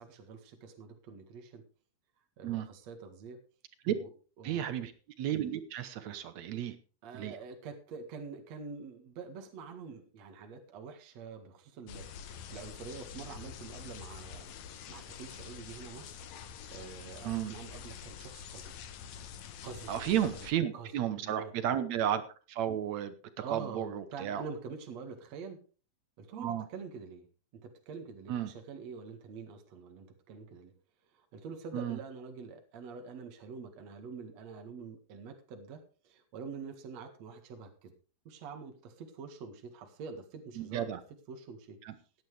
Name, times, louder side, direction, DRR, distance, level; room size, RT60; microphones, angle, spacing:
voice 1, 0.0-1.6 2.4-3.4 3.9-4.1 4.4-4.7 7.0-14.5 14.9-16.2 16.7-18.9 19.6-19.9 20.2-20.3 20.7-20.9 21.2-21.5 23.4-25.6 26.2-27.3 27.6-30.7 31.1-37.9 38.3-40.9 41.3-41.8, right 5 dB, 50° right, 4 dB, 2.6 m, -46 dB
voice 2, 4.4-4.9 5.2-6.7 7.1-7.4 17.2-17.5 19.9-22.2 22.5-23.1 23.5-24.4 26.4-26.6 28.3-28.5 31.7-32.0 40.6-41.0 41.8-41.9, right 10 dB, 70° right, 11 dB, 1.7 m, -33 dB
sound 1, 11.9-20.5, left 7 dB, 65° left, 1.8 m, -46 dB
17.0 x 10.5 x 3.4 m, 0.37 s
omnidirectional pair, 4.4 m